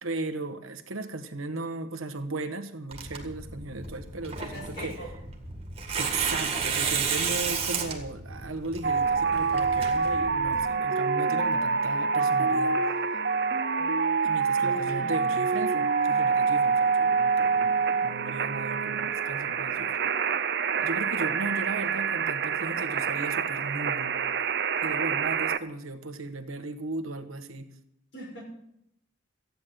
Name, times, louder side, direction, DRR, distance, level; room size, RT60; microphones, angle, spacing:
voice 1, 0.0-5.0 5.9-12.8 14.2-20.0 20.8-24.2 24.8-27.7, right 2 dB, 90° right, 8 dB, 1.3 m, -36 dB
Tearing, 2.9-10.7, right 5 dB, 30° right, 1.8 m, -33 dB
voice 2, 4.4-5.1 7.7-7.8 14.6-15.2 28.1-28.4, equal, 55° left, -1 dB, 5.9 m, -43 dB
sound 1, 8.8-25.6, right 5 dB, 55° right, 0.6 m, -26 dB
14.0 x 9.5 x 7.7 m, 0.77 s
head